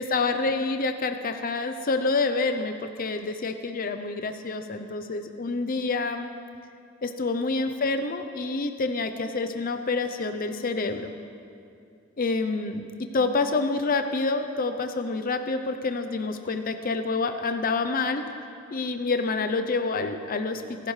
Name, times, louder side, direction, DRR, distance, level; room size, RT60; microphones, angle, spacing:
voice 1, 0.0-6.3 7.0-11.1 12.2-12.9 13.1-18.2 18.7-20.9, left 3 dB, 45° left, 8 dB, 0.6 m, -27 dB
25.5 x 12.0 x 3.3 m, 2.5 s
head